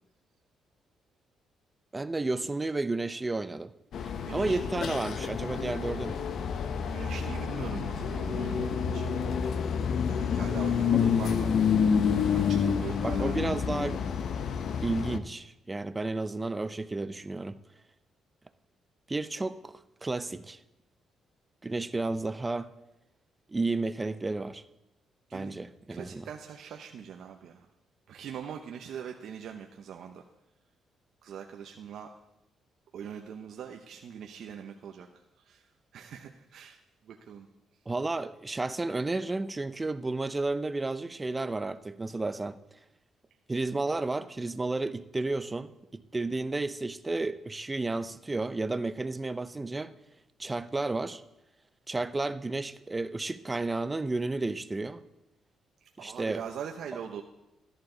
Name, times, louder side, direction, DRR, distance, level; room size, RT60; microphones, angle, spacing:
voice 1, 1.9-3.7 4.0-6.2 10.9-11.0 13.0-14.0 14.8-17.6 19.1-20.6 21.6-22.7 23.5-24.6 25.3-26.3 37.9-42.6 43.5-49.9 50.4-51.2 51.9-55.0 56.0-56.4, right 2 dB, 20° right, 12 dB, 0.6 m, -32 dB
sound 1, 3.9-15.2, left 6 dB, 65° left, 0.8 m, -28 dB
voice 2, 4.2-4.6 6.9-9.1 10.1-11.5 12.3-13.4 25.3-25.6 25.9-27.7 28.1-30.2 31.2-32.1 32.9-35.1 35.4-35.7 35.9-36.8 37.0-37.5 56.0-57.2, right 8 dB, 70° right, 3 dB, 0.8 m, -42 dB
13.5 x 11.0 x 3.9 m, 0.93 s
cardioid pair, 90°, 0 cm